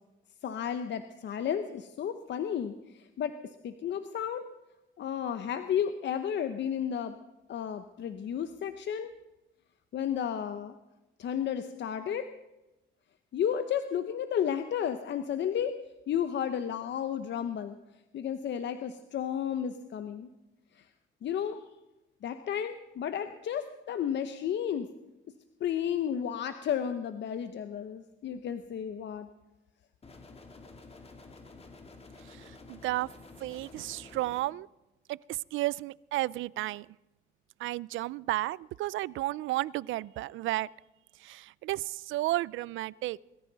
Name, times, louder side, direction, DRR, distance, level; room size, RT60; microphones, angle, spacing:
voice 1, 0.4-3.3 3.6-4.4 5.0-7.2 7.5-9.1 9.9-10.7 11.2-12.3 13.3-15.7 16.1-17.8 18.1-20.3 20.7-20.9 21.2-21.6 22.2-24.9 25.6-29.3, left 9 dB, 65° left, 9 dB, 0.9 m, -32 dB
sound 1, 30.0-34.4, left 3 dB, 30° left, 2.2 m, -50 dB
voice 2, 32.3-33.1 33.4-34.7 35.1-36.9 37.6-40.7 41.2-43.2, right 17 dB, 80° right, 23 dB, 0.4 m, -33 dB
22.5 x 14.0 x 4.1 m, 1.0 s
cardioid pair, 90°, 20 cm